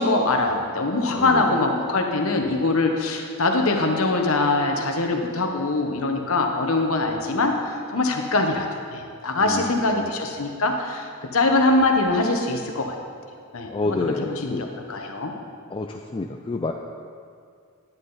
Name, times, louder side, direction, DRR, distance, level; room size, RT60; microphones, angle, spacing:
voice 1, 0.0-7.5 7.9-8.6 8.9-12.9 13.5-14.1 14.4-15.3, left 2 dB, 70° left, 3 dB, 1.2 m, -23 dB
voice 2, 1.1-1.6 9.4-10.1 13.7-14.7 15.7-16.7, left 2 dB, 25° left, 3 dB, 0.4 m, -29 dB
10.5 x 10.0 x 4.1 m, 2.2 s
head